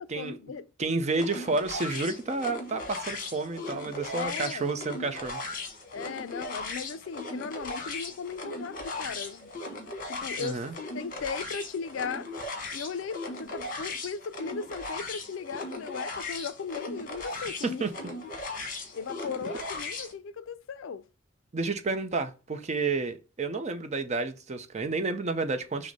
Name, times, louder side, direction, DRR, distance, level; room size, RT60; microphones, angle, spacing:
voice 1, 0.0-0.7 4.1-4.7 5.9-9.5 10.0-10.6 10.9-12.3 12.7-17.9 18.9-21.1, left 6 dB, 70° left, 0.4 m, -37 dB
voice 2, 0.8-5.4 10.4-10.7 17.6-17.9 21.5-25.9, right 3 dB, 35° right, 0.6 m, -30 dB
sound 1, 1.1-20.1, left 2 dB, 45° left, 1.2 m, -38 dB
6.2 x 2.1 x 4.0 m
head